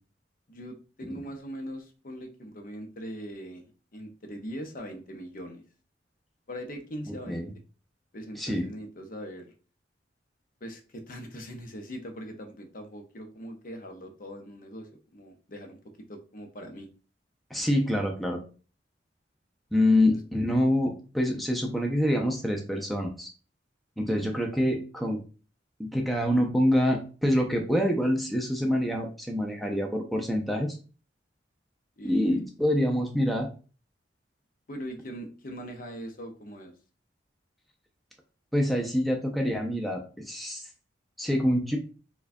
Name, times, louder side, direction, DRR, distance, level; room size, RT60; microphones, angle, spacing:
voice 1, 0.5-3.6 3.9-5.6 6.5-7.5 8.1-9.5 10.6-15.8 16.1-16.9 20.0-20.2 32.0-32.4 34.7-36.7, equal, 50° left, 5 dB, 0.6 m, -41 dB
voice 2, 17.5-18.4 19.7-23.3 24.0-25.2 25.8-30.8 32.0-33.5 38.5-40.6 41.2-41.8, left 1 dB, ahead, 1 dB, 0.4 m, -26 dB
4.5 x 2.2 x 2.6 m, 0.36 s
head